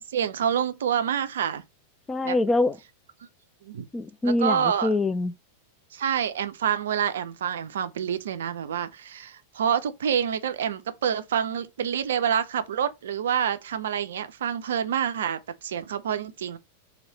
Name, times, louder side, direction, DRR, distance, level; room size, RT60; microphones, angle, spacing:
voice 1, 0.0-1.6 2.2-2.4 3.6-3.9 4.2-4.9 5.9-16.6, right 8 dB, 60° right, 0.4 m, -27 dB
voice 2, 2.1-2.8 3.9-5.3, left 2 dB, 15° left, 0.4 m, -24 dB
3.1 x 2.8 x 3.9 m
figure-of-eight pair, 90°, 0 cm